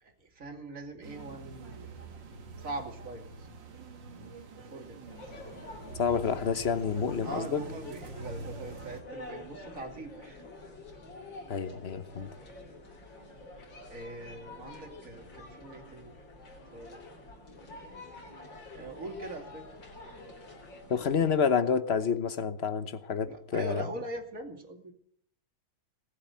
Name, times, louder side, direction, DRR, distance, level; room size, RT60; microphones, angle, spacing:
voice 1, 0.0-1.9 2.6-3.5 4.6-5.1 7.2-10.4 13.9-16.1 16.7-17.0 18.7-19.7 23.2-24.9, right 2 dB, 40° right, 4 dB, 2.9 m, -42 dB
sound 1, 1.0-9.0, right 3 dB, 70° right, 2.4 m, -45 dB
sound 2, 5.1-21.4, left 2 dB, 70° left, 4.1 m, -48 dB
voice 2, 6.0-7.6 11.5-12.3 20.9-23.8, left 6 dB, 45° left, 12 dB, 0.9 m, -29 dB
19.5 x 7.9 x 9.3 m, 0.62 s
omnidirectional pair, 2.1 m